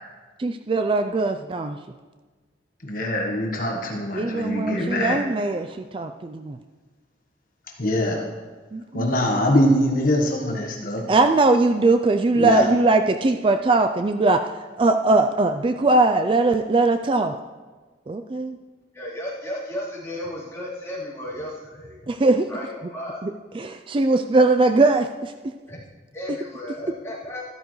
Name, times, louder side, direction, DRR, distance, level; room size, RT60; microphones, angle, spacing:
voice 1, 0.4-1.8 4.1-6.6 8.7-9.1 11.1-14.4 14.8-17.4 18.1-18.6 22.1-22.5 23.2-25.3, right 3 dB, 30° right, 7 dB, 0.3 m, -20 dB
voice 2, 2.8-5.2 7.8-8.2 8.9-11.0 12.3-12.7, left 1 dB, 50° left, 0 dB, 1.3 m, -23 dB
voice 3, 18.9-22.1 22.5-23.2 25.7-25.8 26.1-27.4, left 1 dB, 15° left, -9 dB, 3.6 m, -34 dB
13.0 x 13.0 x 3.2 m, 1.3 s
head